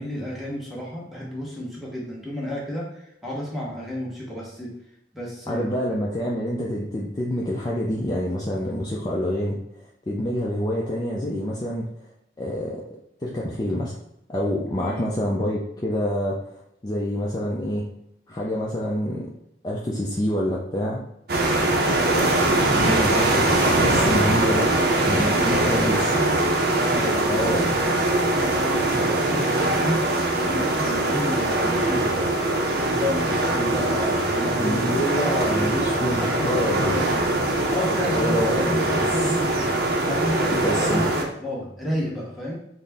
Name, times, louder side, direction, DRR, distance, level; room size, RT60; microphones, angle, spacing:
voice 1, 0.0-4.7 5.1-5.7 14.8-15.1 24.4-26.3 26.8-27.7 28.4-32.2 32.7-35.0 35.5-35.9 36.2-37.3 37.7-39.7 40.0-42.6, left 1 dB, ahead, -5 dB, 1.0 m, -31 dB
voice 2, 5.5-11.9 12.4-14.0 14.3-16.4 16.8-17.9 18.3-19.3 19.6-21.0 22.0-22.3 22.7-24.7 25.0-26.0 27.3-27.6 34.6-36.9 38.1-39.3 40.6-41.1, equal, 20° left, -4 dB, 0.4 m, -27 dB
sound 1, 21.3-41.2, right 2 dB, 60° right, 0.6 m, -22 dB
4.0 x 2.0 x 3.5 m, 0.78 s
head